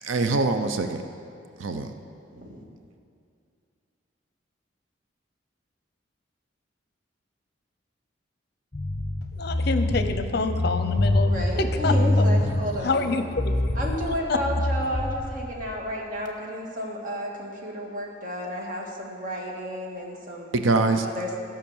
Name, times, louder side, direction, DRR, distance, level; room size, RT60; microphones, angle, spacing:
voice 1, 0.0-1.0 1.6-1.9 20.5-21.1, right 3 dB, 85° right, 7 dB, 0.6 m, -23 dB
sound 1, 8.7-15.6, left 1 dB, 25° left, 0.8 m, -25 dB
voice 2, 9.3-11.9 12.8-13.7 14.3-14.4, left 3 dB, 55° left, 8 dB, 0.6 m, -27 dB
voice 3, 11.2-13.1 13.8-20.5 21.0-21.4, equal, 45° right, -1 dB, 1.8 m, -32 dB
14.5 x 5.7 x 7.2 m, 2.4 s
head